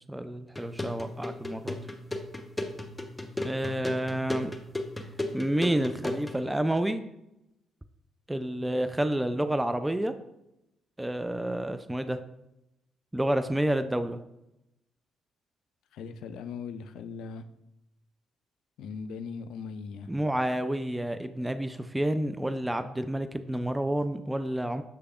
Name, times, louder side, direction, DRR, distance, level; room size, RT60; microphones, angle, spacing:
voice 1, 0.1-1.8 3.4-4.5 5.3-7.0 8.3-10.1 11.0-12.2 13.1-14.2 20.1-24.8, right 1 dB, 10° right, 10 dB, 0.3 m, -29 dB
sound 1, 0.6-6.4, left 1 dB, 15° left, 0.7 m, -36 dB
voice 2, 15.9-17.4 18.8-20.1, left 5 dB, 70° left, 10 dB, 0.3 m, -39 dB
6.7 x 3.3 x 2.4 m, 0.88 s
hypercardioid pair, 45°, 0 cm